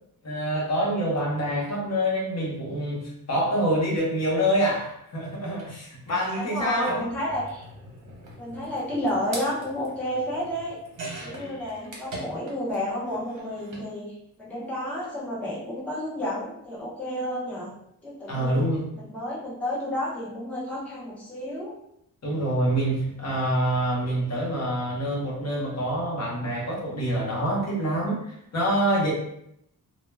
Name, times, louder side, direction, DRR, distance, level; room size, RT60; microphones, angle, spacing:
voice 1, 0.2-3.0 3.3-7.0 11.3-11.9 18.3-18.8 22.2-29.1, equal, 50° left, -3 dB, 0.8 m, -26 dB
sound 1, 5.6-5.7 6.0-12.8 13.0-13.9 14.9-15.0 15.3-15.4, right 2 dB, 60° right, 0.8 m, -42 dB
voice 2, 6.4-7.7 8.4-10.8 11.2-14.1 14.4-17.7 18.0-18.6 19.0-21.7, left 1 dB, 5° left, -7 dB, 0.6 m, -31 dB
2.2 x 2.1 x 3.2 m, 0.76 s
wide cardioid pair, 150°, 34 cm